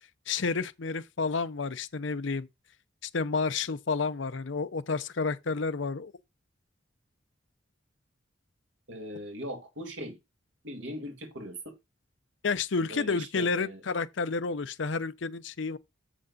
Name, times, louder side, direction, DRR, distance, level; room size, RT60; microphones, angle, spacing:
voice 1, 0.3-2.5 3.0-6.1 12.4-15.8, left 4 dB, 70° left, 0.7 m, -30 dB
voice 2, 8.9-10.2 10.6-11.8 12.9-13.8, equal, 75° right, 2.2 m, -40 dB
7.8 x 6.0 x 4.0 m
head